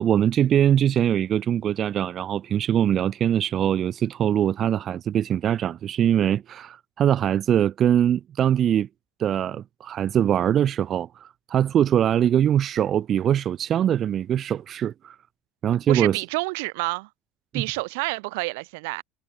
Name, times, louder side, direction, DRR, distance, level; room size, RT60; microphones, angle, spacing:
voice 1, 0.0-8.9 9.2-15.2 15.6-16.2 17.5-17.7, right 10 dB, 40° right, 0.4 m, -22 dB
voice 2, 15.9-17.1 17.5-19.0, right 27 dB, 90° right, 1.0 m, -28 dB
cardioid pair, 125°, 0 cm